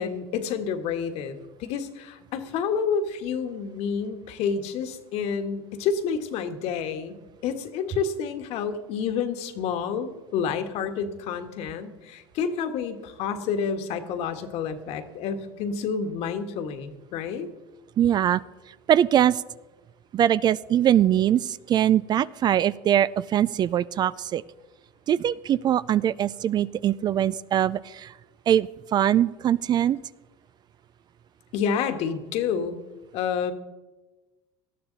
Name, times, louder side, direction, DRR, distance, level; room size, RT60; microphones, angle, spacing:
voice 1, 0.0-17.5 31.5-32.8 33.1-33.5, left 6 dB, 60° left, 7 dB, 1.6 m, -29 dB
voice 2, 18.0-18.4 18.9-19.4 20.1-24.4 25.1-28.1 28.5-30.0, right 10 dB, 35° right, 18 dB, 0.4 m, -22 dB
18.5 x 13.0 x 4.0 m, 1.1 s
supercardioid pair, 115°, 12 cm